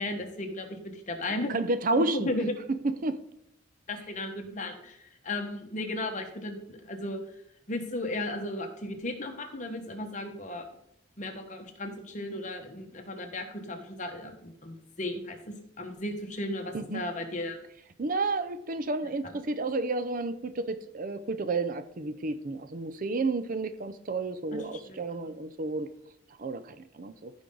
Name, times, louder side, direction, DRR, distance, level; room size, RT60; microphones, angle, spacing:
voice 1, 0.0-1.6 1.9-2.5 3.9-7.2 7.7-10.7 11.2-17.6 24.9-25.0, left 1 dB, 40° left, 4 dB, 1.3 m, -35 dB
voice 2, 1.5-2.3 2.8-3.2 16.7-17.0 18.0-25.9 26.4-27.3, right 3 dB, 45° right, 12 dB, 0.5 m, -31 dB
14.5 x 5.4 x 3.9 m, 0.77 s
head